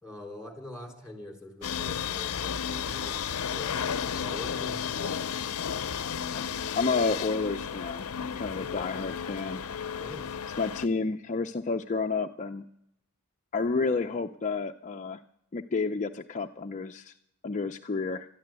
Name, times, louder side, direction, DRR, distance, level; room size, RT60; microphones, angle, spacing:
voice 1, 0.0-3.7 4.1-5.6 10.0-10.4, left 2 dB, 5° right, 0 dB, 3.9 m, -44 dB
sound 1, 1.6-10.9, left 7 dB, 85° left, 0.6 m, -33 dB
sound 2, 1.6-9.4, equal, 45° right, 6.4 m, -54 dB
voice 2, 6.8-8.1 8.4-9.7 10.6-12.6 13.5-15.2 15.5-17.1 17.4-18.3, left 4 dB, 35° left, 5 dB, 0.5 m, -30 dB
13.0 x 10.5 x 8.9 m, 0.78 s
head